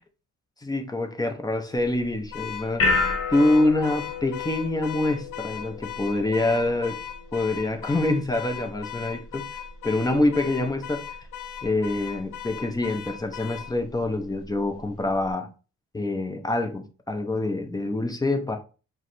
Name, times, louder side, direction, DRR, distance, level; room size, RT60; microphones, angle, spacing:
voice 1, 0.6-3.0 3.3-7.0 7.3-9.5 9.8-11.0 11.6-15.5 15.9-18.6, left 2 dB, 15° left, 0.7 m, -25 dB
sound 1, 1.8-15.3, left 3 dB, 50° left, 1.2 m, -34 dB
Car / Alarm, 2.3-13.7, left 10 dB, 85° left, 0.6 m, -38 dB
4.8 x 2.2 x 4.1 m
cardioid pair, 90°, 30 cm